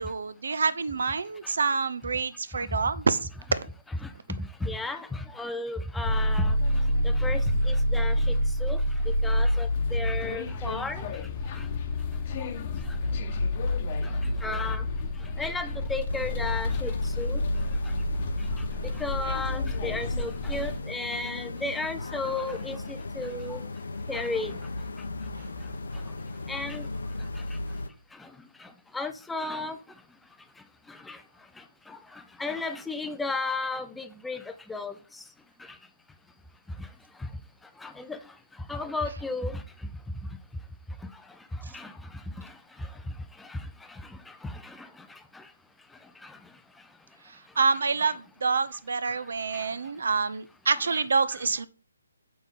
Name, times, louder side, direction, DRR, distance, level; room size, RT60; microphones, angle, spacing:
voice 1, 0.0-3.3 47.6-51.7, right 4 dB, 70° right, 0.7 m, -27 dB
voice 2, 4.6-5.1 5.4-6.5 7.2-7.4 7.7-8.1 8.6-8.8 9.2-11.0 14.4-14.8 15.4-16.9 17.2-17.4 19.0-22.8 23.2-23.6 24.1-24.5 26.5-26.8 28.9-29.8 31.1-31.2 32.4-34.4 34.7-34.9 37.8-38.2 38.7-39.5 41.7-41.9, left 3 dB, 5° left, 0.4 m, -33 dB
sound 1, 6.0-20.8, left 1 dB, 35° left, 1.0 m, -28 dB
sound 2, 16.1-27.9, left 2 dB, 80° left, 0.9 m, -37 dB
6.7 x 6.0 x 3.7 m
hypercardioid pair, 160°, 0 cm